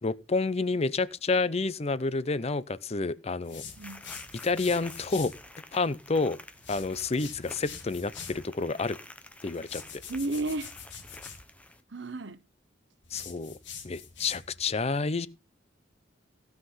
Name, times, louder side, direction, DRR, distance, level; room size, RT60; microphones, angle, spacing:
voice 1, 0.0-3.6 4.4-5.3 5.7-6.4 6.7-9.0 9.4-9.8 13.1-13.5 13.8-15.3, left 3 dB, 35° left, 0.6 m, -29 dB
sound 1, 3.4-5.4 6.5-8.4 9.5-11.4 13.0-14.6, left 6 dB, 80° left, 2.9 m, -45 dB
sound 2, 3.7-11.8, left 1 dB, 10° left, 1.0 m, -50 dB
voice 2, 3.8-4.1 10.1-10.7 11.9-12.5, right 2 dB, 70° right, 0.9 m, -33 dB
16.0 x 5.8 x 5.6 m
head